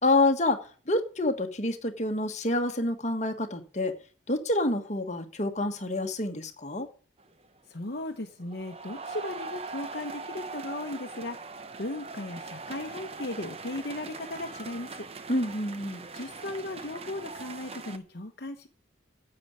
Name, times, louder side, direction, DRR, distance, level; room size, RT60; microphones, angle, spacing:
voice 1, 0.0-4.0 4.3-6.9 15.3-16.1, left 2 dB, 35° left, 1.4 m, -27 dB
sound 1, 7.2-7.6 8.0-18.0, right 3 dB, 30° right, 0.8 m, -41 dB
voice 2, 7.7-11.5 11.8-15.1 16.1-18.7, left 1 dB, 55° left, 1.0 m, -37 dB
9.6 x 7.8 x 9.5 m
head